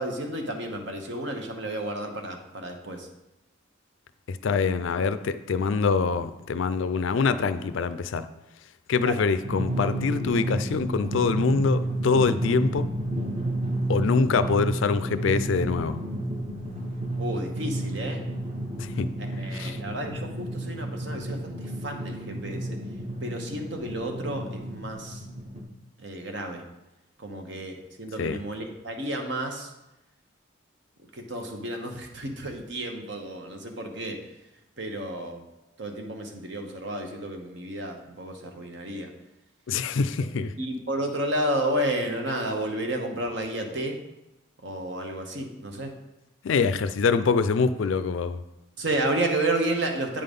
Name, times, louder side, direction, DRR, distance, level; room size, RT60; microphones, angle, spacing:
voice 1, 0.0-3.1 9.0-9.2 17.2-18.2 19.2-22.7 23.2-25.2 26.0-26.6 27.2-29.7 31.1-34.2 34.8-35.5 35.8-39.1 40.6-44.0 44.6-45.9 48.8-50.2, right 1 dB, 60° right, 3 dB, 1.0 m, -31 dB
voice 2, 4.3-8.3 8.9-12.9 13.9-16.0 18.8-19.1 19.5-19.8 28.2-28.4 39.7-40.5 46.4-48.4, left 5 dB, 70° left, 12 dB, 0.4 m, -25 dB
Drum, 9.4-25.6, right 1 dB, 30° right, 0.9 m, -31 dB
8.7 x 3.8 x 5.2 m, 0.95 s
head